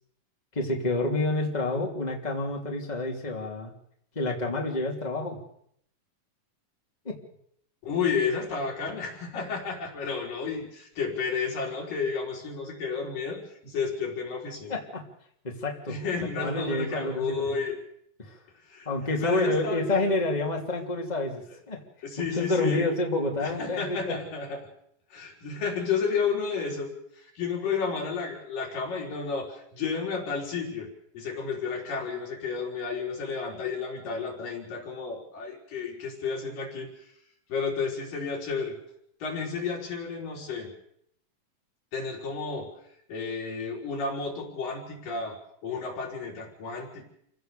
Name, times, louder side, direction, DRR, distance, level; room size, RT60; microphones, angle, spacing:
voice 1, 0.5-3.7 4.1-5.4 7.0-7.2 14.7-15.1 15.4-17.5 18.2-18.4 18.8-21.8 22.3-24.2, left 2 dB, 15° left, 0 dB, 2.8 m, -29 dB
voice 2, 7.8-14.8 15.9-17.8 18.7-18.9 19.2-20.1 22.0-22.9 23.4-24.6 25.1-30.9 31.1-36.9 37.5-38.8 39.2-40.7 41.9-42.7 43.1-47.0, left 5 dB, 80° left, 0 dB, 5.7 m, -32 dB
28.0 x 17.0 x 7.0 m, 0.71 s
omnidirectional pair, 3.9 m